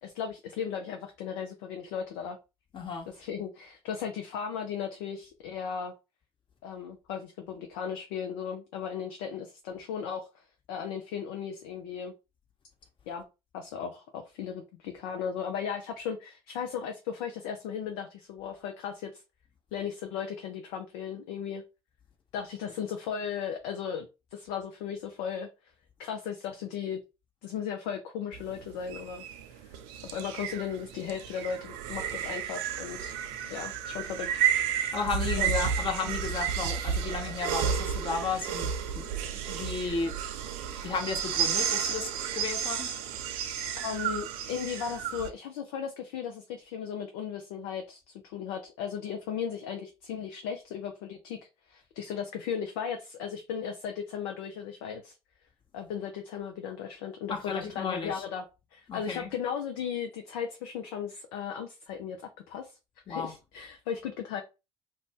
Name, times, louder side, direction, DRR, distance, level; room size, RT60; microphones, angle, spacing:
voice 1, 0.0-2.4 3.1-5.9 6.6-12.1 13.1-13.2 13.5-19.2 19.7-21.6 22.3-25.5 26.0-27.0 27.4-29.2 29.5-29.7 30.0-33.1 33.5-34.3 35.4-35.7 43.8-51.4 51.7-55.2 55.7-58.4 58.7-62.2 62.5-62.8 63.1-64.4, left 7 dB, 65° left, 0.5 m, -36 dB
voice 2, 2.7-3.1 34.8-39.1 39.5-40.2 40.8-42.9 57.3-58.2 58.9-59.3 63.1-63.4, left 4 dB, 40° left, 1.1 m, -34 dB
sound 1, 28.3-45.3, right 8 dB, 65° right, 0.5 m, -32 dB
2.5 x 2.1 x 3.4 m
figure-of-eight pair, 55°, 13 cm